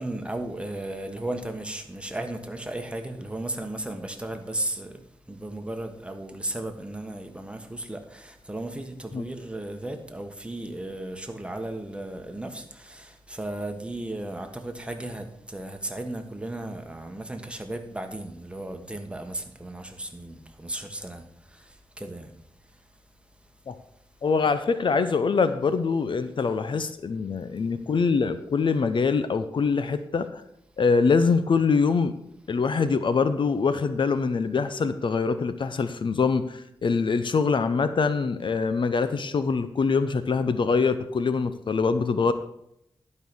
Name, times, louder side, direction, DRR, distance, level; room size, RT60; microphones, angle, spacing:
voice 1, 0.0-23.0 23.4-23.5, right 1 dB, 10° right, 1.4 m, -35 dB
voice 2, 24.2-30.4 30.8-32.1 32.5-42.3, left 5 dB, 65° left, 0.7 m, -24 dB
11.5 x 5.4 x 6.3 m
wide cardioid pair, 85°, 9 cm